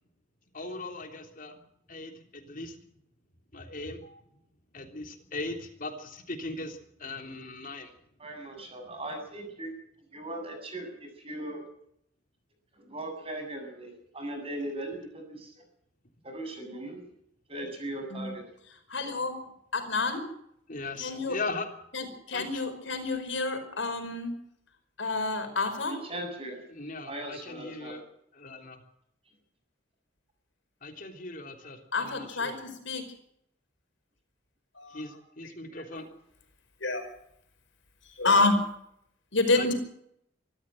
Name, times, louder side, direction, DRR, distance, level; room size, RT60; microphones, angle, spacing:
voice 1, 0.5-1.6 1.9-2.8 3.5-4.2 4.7-7.9 20.7-21.7 22.3-22.6 26.7-28.1 28.3-28.8 30.8-32.5 34.9-36.1 39.5-39.7, left 2 dB, 45° left, 5 dB, 3.4 m, -39 dB
voice 2, 8.2-9.7 10.1-11.6 12.8-15.5 16.2-17.1 17.5-18.4 25.8-26.6 27.1-27.9, right 1 dB, 30° right, 4 dB, 7.7 m, -38 dB
voice 3, 18.9-19.4 19.7-20.3 21.0-21.4 21.9-24.3 25.0-26.0 31.9-33.0 34.8-35.0 35.9-36.0 36.8-37.0 38.1-38.6 39.3-39.7, left 3 dB, 75° left, 7 dB, 5.2 m, -28 dB
24.5 x 14.0 x 7.8 m, 0.73 s
head